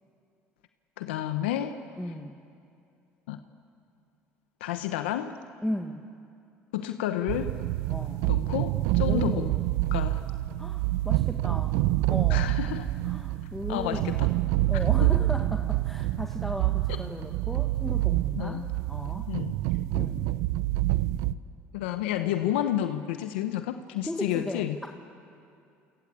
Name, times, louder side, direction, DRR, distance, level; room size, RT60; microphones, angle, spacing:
voice 1, 1.0-1.8 3.3-3.4 4.6-5.4 6.7-7.5 8.3-9.5 9.9-10.2 12.3-12.9 13.7-14.3 15.0-15.1 18.4-18.7 19.3-19.6 21.7-24.8, left 12 dB, 90° left, 9 dB, 1.0 m, -30 dB
voice 2, 2.0-2.4 5.6-6.1 7.9-8.3 9.0-9.6 10.6-11.8 12.1-12.5 13.0-14.3 14.7-19.3 19.9-20.4 22.6-22.7 24.0-24.9, left 1 dB, 5° left, 3 dB, 1.7 m, -36 dB
sound 1, 7.3-21.3, right 16 dB, 80° right, 0.6 m, -27 dB
28.0 x 25.0 x 8.5 m, 2.5 s
supercardioid pair, 70°, 6 cm